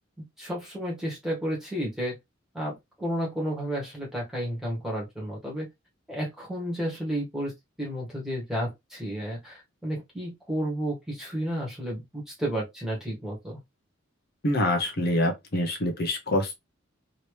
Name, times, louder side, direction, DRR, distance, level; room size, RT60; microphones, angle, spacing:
voice 1, 0.2-2.2 2.5-5.7 6.1-7.5 7.8-13.6, equal, ahead, 1.5 m, -32 dB
voice 2, 14.4-16.5, left 1 dB, 50° left, 0.8 m, -25 dB
2.9 x 2.9 x 3.1 m
head